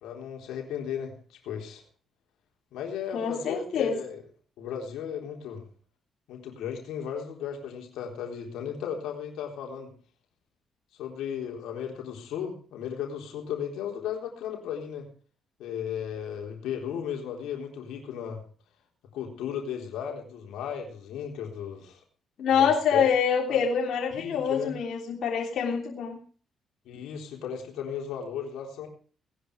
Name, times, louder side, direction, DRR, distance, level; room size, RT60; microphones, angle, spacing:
voice 1, 0.0-1.8 2.7-4.2 4.6-5.7 6.3-9.9 11.0-15.1 15.6-18.4 19.1-22.0 22.6-23.1 23.5-23.6 24.1-24.7 26.9-28.9, left 8 dB, 85° left, 2 dB, 3.9 m, -35 dB
voice 2, 3.1-4.0 22.4-26.2, left 7 dB, 70° left, 0 dB, 3.4 m, -25 dB
19.0 x 10.5 x 4.9 m, 0.42 s
cardioid pair, 75°, 0 cm